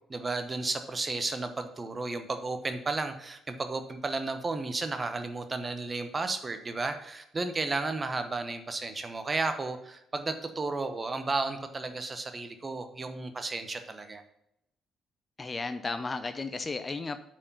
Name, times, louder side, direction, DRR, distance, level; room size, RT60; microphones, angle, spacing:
voice 1, 0.1-14.2, right 3 dB, 30° right, 8 dB, 1.0 m, -33 dB
voice 2, 15.4-17.2, left 3 dB, 30° left, 10 dB, 0.6 m, -34 dB
8.5 x 4.6 x 5.7 m, 0.80 s
figure-of-eight pair, 45°, 0 cm